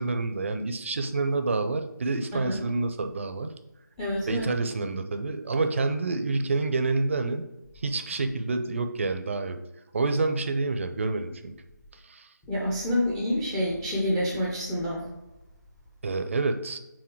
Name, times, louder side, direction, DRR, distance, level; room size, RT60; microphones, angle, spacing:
voice 1, 0.0-3.5 4.3-7.4 7.8-9.6 9.9-11.5 12.0-12.3 16.0-16.8, right 3 dB, 40° right, 8 dB, 0.6 m, -28 dB
voice 2, 4.0-4.4 12.5-15.0, left 1 dB, 5° left, -5 dB, 0.5 m, -27 dB
6.3 x 4.0 x 4.5 m, 1.0 s
figure-of-eight pair, 165°, 10 cm